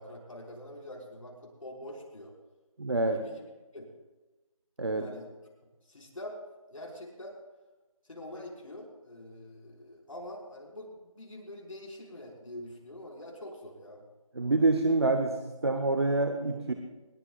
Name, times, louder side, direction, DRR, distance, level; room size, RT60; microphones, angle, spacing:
voice 1, 0.0-2.3 3.1-3.4 3.7-3.9 4.9-5.3 5.8-6.4 6.7-7.4 8.1-14.0, left 1 dB, 65° left, -2 dB, 5.4 m, -45 dB
voice 2, 2.8-3.2 4.8-5.1 14.3-16.7, right 2 dB, 45° right, 6 dB, 1.0 m, -27 dB
21.5 x 20.0 x 2.5 m, 1.2 s
figure-of-eight pair, 175°, 18 cm